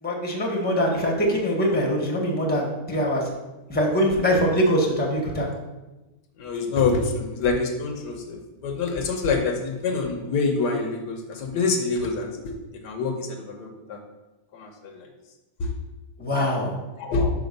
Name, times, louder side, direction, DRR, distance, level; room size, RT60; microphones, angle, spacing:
voice 1, 0.0-3.2 3.7-5.5 16.2-16.7, equal, 5° left, -1 dB, 1.2 m, -23 dB
voice 2, 6.4-12.5 12.8-14.0 14.5-15.1 15.6-15.7 17.0-17.3, left 4 dB, 80° left, 4 dB, 1.5 m, -26 dB
5.4 x 5.1 x 5.2 m, 1.1 s
omnidirectional pair, 1.8 m